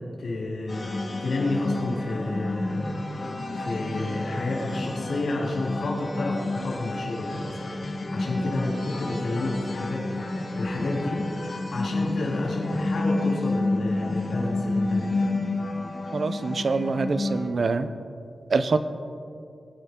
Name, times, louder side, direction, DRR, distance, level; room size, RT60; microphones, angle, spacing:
voice 1, 0.0-3.0 3.5-7.6 8.1-11.3 11.7-15.3, left 2 dB, 80° left, -3 dB, 3.2 m, -30 dB
sound 1, 0.7-17.5, left 2 dB, 45° left, 2.1 m, -30 dB
voice 2, 16.1-17.9 18.5-18.8, right 4 dB, 60° right, 11 dB, 0.7 m, -25 dB
21.5 x 9.7 x 3.8 m, 2.5 s
wide cardioid pair, 105°, 0 cm